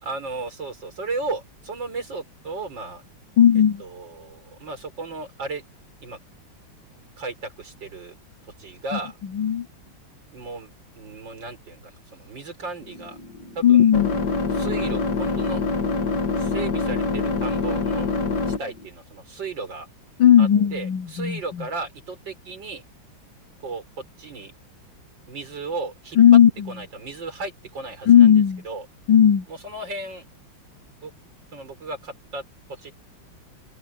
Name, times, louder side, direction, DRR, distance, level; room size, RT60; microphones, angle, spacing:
voice 1, 0.0-3.0 3.8-5.6 6.0-6.2 7.2-8.1 8.6-9.1 10.3-10.7 11.0-13.2 13.5-13.9 14.5-15.6 16.4-18.2 18.6-19.9 20.4-22.8 23.6-23.8 24.2-24.5 25.3-26.2 26.7-28.3 28.6-28.9 29.5-30.2 31.0-31.1 31.5-32.4 32.8-32.9, right 3 dB, 65° right, 5.1 m, -34 dB
voice 2, 3.4-3.8 8.9-9.7 13.6-14.2 20.2-21.6 26.2-26.7 28.1-28.6 29.1-29.5, left 9 dB, 70° left, 1.7 m, -16 dB
sound 1, 12.8-18.9, left 3 dB, 55° left, 2.3 m, -25 dB
omnidirectional pair, 2.2 m